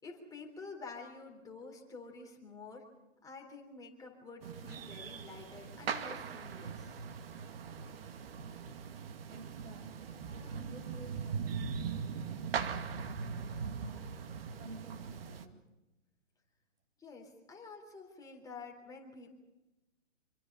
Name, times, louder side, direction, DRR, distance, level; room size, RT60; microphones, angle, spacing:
voice 1, 0.0-2.9 3.2-7.0 17.0-19.4, left 4 dB, 10° left, 1 dB, 3.7 m, -49 dB
sound 1, 4.4-15.5, right 6 dB, 50° right, 2.2 m, -40 dB
voice 2, 9.3-14.1 14.5-15.6, right 2 dB, 85° right, 5 dB, 7.8 m, -53 dB
27.5 x 23.5 x 5.5 m, 1.0 s
hypercardioid pair, 135°, 37 cm